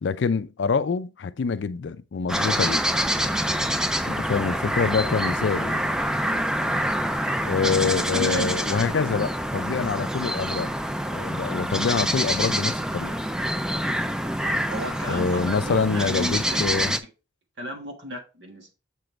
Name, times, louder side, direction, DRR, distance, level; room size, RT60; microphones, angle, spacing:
voice 1, 0.0-2.8 3.2-3.3 4.0-5.8 7.4-10.7 11.1-13.2 15.1-17.0, left 5 dB, 65° left, 0.4 m, -26 dB
sound 1, 2.3-17.0, equal, 5° right, 0.3 m, -26 dB
voice 2, 7.6-8.5 14.7-16.7 17.6-18.7, right 1 dB, 65° right, 1.5 m, -33 dB
6.8 x 5.1 x 3.2 m
head